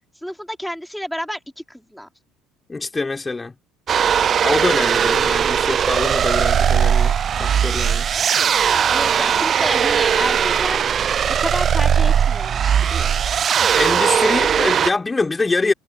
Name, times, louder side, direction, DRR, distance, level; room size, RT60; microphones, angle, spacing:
voice 1, 0.2-2.1 8.9-10.8 11.4-13.1, equal, ahead, 5.0 m, -30 dB
voice 2, 2.7-3.5 4.4-8.1 13.7-15.7, left 3 dB, 20° left, 3.6 m, -24 dB
sound 1, 3.9-14.9, right 8 dB, 45° right, 0.5 m, -18 dB
hypercardioid pair, 65°, 0 cm